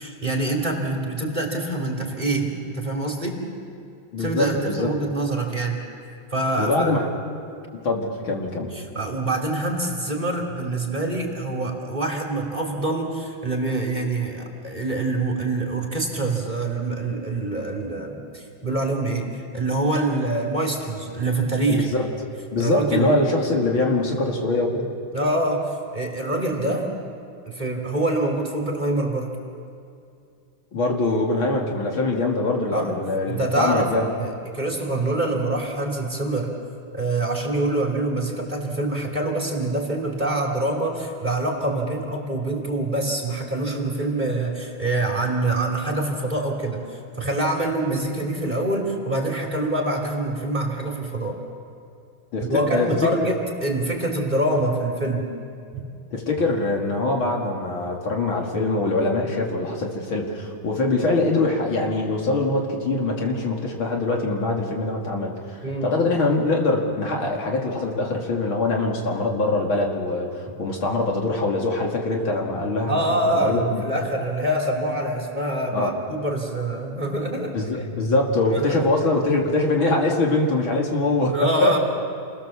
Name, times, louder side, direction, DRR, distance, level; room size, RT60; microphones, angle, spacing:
voice 1, 0.0-3.4 4.2-5.8 6.3-6.9 8.7-19.3 19.5-21.9 22.6-23.1 25.1-25.6 25.9-26.9 27.5-29.3 32.7-33.0 33.3-36.5 36.9-51.4 52.4-55.3 55.7-55.8 65.6-66.0 72.9-77.5 78.6-78.8 81.3-81.8, right 2 dB, 20° right, 0 dB, 3.1 m, -25 dB
voice 2, 4.1-4.9 6.6-7.1 7.8-8.7 21.7-22.1 22.5-24.9 30.7-34.1 52.3-53.3 56.1-65.3 65.8-73.8 75.7-75.9 77.5-81.8, left 2 dB, 75° left, 0 dB, 3.3 m, -23 dB
29.0 x 19.0 x 7.2 m, 2.5 s
omnidirectional pair, 2.3 m